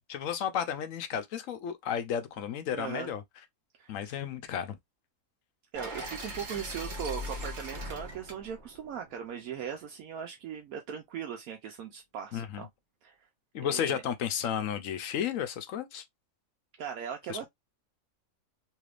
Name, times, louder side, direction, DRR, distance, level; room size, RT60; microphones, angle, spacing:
voice 1, 0.1-3.2 3.9-4.8 12.3-12.6 13.5-16.0 17.3-17.4, left 9 dB, 70° left, 1.0 m, -33 dB
voice 2, 2.7-3.1 3.8-4.2 5.7-12.7 13.0-13.2 13.7-14.0 16.8-17.4, right 8 dB, 75° right, 1.1 m, -39 dB
sound 1, 5.7-9.8, equal, 35° right, 1.1 m, -40 dB
3.3 x 3.1 x 2.4 m
omnidirectional pair, 1.5 m